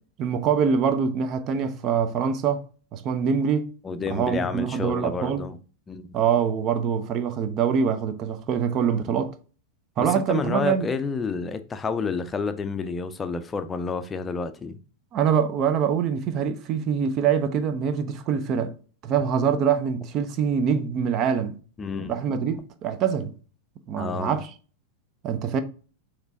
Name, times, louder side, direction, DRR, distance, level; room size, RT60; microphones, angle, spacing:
voice 1, 0.2-2.7 2.9-3.7 4.1-5.4 6.1-9.3 10.0-10.9 15.1-18.7 19.0-21.6 22.1-23.3 23.9-24.5 25.2-25.6, right 7 dB, 35° right, 0.5 m, -24 dB
voice 2, 3.8-5.6 5.9-6.1 10.0-14.8 21.8-22.1 24.0-24.4, left 5 dB, 15° left, 0.5 m, -29 dB
6.0 x 3.1 x 2.6 m
figure-of-eight pair, 90°, 0 cm